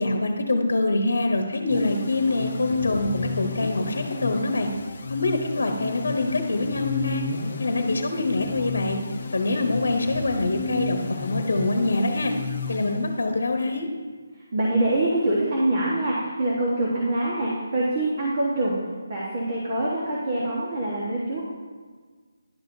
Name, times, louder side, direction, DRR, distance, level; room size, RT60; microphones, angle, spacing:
voice 1, 0.0-4.7 5.1-7.2 7.6-9.0 9.3-12.3 12.7-13.9, left 2 dB, 80° left, 4 dB, 0.9 m, -25 dB
sound 1, 1.7-13.5, left 4 dB, 50° left, 0.8 m, -33 dB
voice 2, 14.5-18.8 19.1-21.4, right 1 dB, 40° right, -5 dB, 1.2 m, -24 dB
11.0 x 6.2 x 2.6 m, 1.5 s
hypercardioid pair, 170°, 0 cm